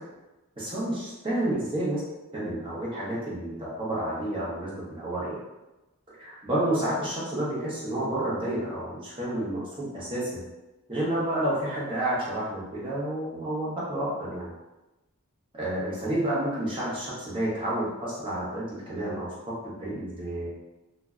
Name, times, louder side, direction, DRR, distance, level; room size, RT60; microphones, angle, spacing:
voice 1, 0.6-2.0 2.3-5.4 6.2-10.4 10.9-14.5 15.5-19.5 19.8-20.5, right 1 dB, 25° right, -7 dB, 0.8 m, -30 dB
2.1 x 2.0 x 3.5 m, 1.0 s
head